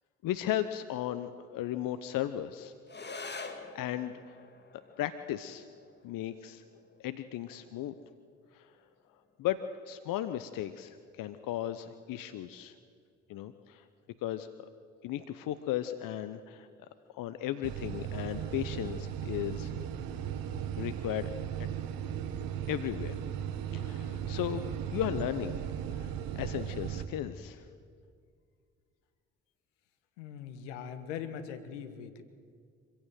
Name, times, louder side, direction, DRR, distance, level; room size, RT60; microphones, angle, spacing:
voice 1, 0.2-2.7 3.3-3.4 3.7-4.3 5.0-5.7 6.0-6.6 7.0-7.9 8.5-8.7 9.4-9.6 9.9-12.7 13.3-13.9 14.2-14.7 15.0-16.7 17.1-19.7 20.8-21.3 21.6-21.7 22.7-23.2 23.7-24.6 24.9-25.6 25.9-27.7, left 12 dB, 65° left, 11 dB, 1.0 m, -35 dB
sound 1, 2.9-11.9, left 3 dB, 30° left, 2.5 m, -49 dB
sound 2, 17.6-27.1, right 9 dB, 75° right, 1.5 m, -37 dB
voice 2, 30.2-32.2, left 8 dB, 85° left, 10 dB, 1.5 m, -41 dB
25.0 x 16.0 x 9.2 m, 2.2 s
hypercardioid pair, 50°, 35 cm